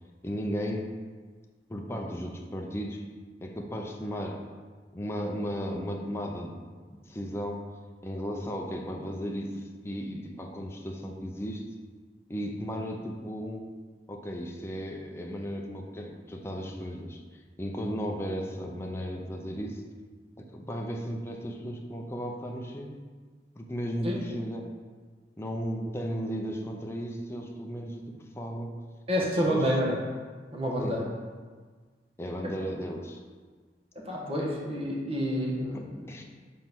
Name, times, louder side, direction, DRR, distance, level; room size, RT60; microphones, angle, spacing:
voice 1, 0.2-0.9 1.7-3.0 3.4-4.4 4.9-6.5 6.9-7.7 8.0-11.6 12.3-13.7 14.1-17.2 17.6-19.8 20.4-23.0 23.6-24.8 25.4-28.8 29.2-29.7 30.8-31.0 32.2-33.2 35.7-35.8 36.1-36.2, equal, 15° left, 1 dB, 0.7 m, -35 dB
voice 2, 29.1-30.0 30.5-31.1 34.0-36.1, equal, 35° right, -3 dB, 1.4 m, -28 dB
5.5 x 4.4 x 6.0 m, 1.5 s
head